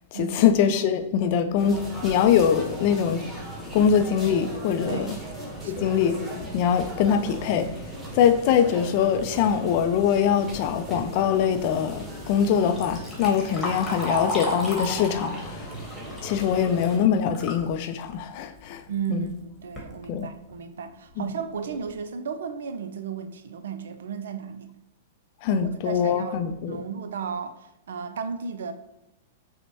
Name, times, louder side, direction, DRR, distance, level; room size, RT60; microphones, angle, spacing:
voice 1, 0.1-3.2 3.7-5.1 5.7-6.2 6.5-7.7 8.1-15.7 16.2-18.8 19.1-19.3 20.1-20.3 21.2-21.3 25.4-26.8, left 8 dB, 50° left, 0.4 m, -23 dB
sound 1, 1.6-17.0, equal, 10° right, 1.3 m, -38 dB
voice 2, 5.6-6.0 18.9-24.7 25.5-28.7, right 7 dB, 75° right, 0.4 m, -34 dB
Liquid, 12.5-17.7 18.1-18.2 19.0-19.1 19.6-19.9 20.5-20.6 21.1-21.2 21.6-21.9, equal, 10° left, 1.1 m, -34 dB
5.2 x 2.1 x 2.8 m
hypercardioid pair, 110°, 0 cm